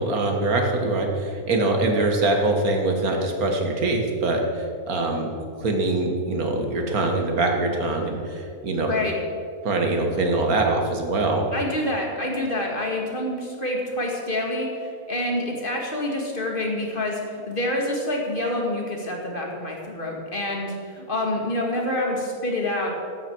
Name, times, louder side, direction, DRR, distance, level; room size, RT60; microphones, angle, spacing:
voice 1, 0.0-5.3 5.6-8.9 9.6-11.5, right 2 dB, 75° right, 3 dB, 2.1 m, -23 dB
voice 2, 8.8-9.1 11.5-22.9, left 1 dB, 35° left, 0 dB, 2.2 m, -27 dB
14.0 x 12.0 x 4.7 m, 2.4 s
omnidirectional pair, 1.6 m